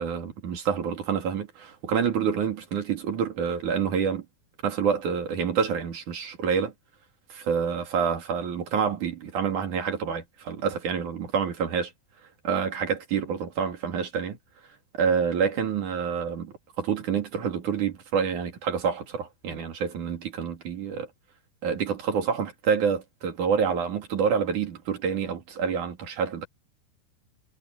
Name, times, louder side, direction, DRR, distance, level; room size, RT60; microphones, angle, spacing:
voice 1, 0.0-4.3 4.6-6.7 7.3-11.9 12.4-14.4 15.0-21.1 21.6-26.5, right 6 dB, 55° right, 4.0 m, -27 dB
omnidirectional pair, 4.5 m